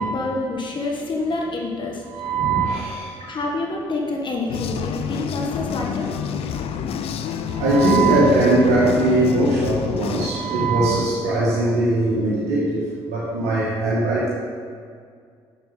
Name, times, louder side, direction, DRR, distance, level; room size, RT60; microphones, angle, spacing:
voice 1, 0.0-2.0 3.2-6.1 9.0-9.1 10.3-10.4 11.5-11.6, left 2 dB, 50° left, 0 dB, 1.5 m, -27 dB
voice 2, 2.1-3.1 7.5-14.3, right 2 dB, 85° right, -7 dB, 1.8 m, -20 dB
sound 1, 4.5-10.3, left 7 dB, 65° left, 0.6 m, -28 dB
9.2 x 6.6 x 4.0 m, 2.1 s
supercardioid pair, 70°, 11 cm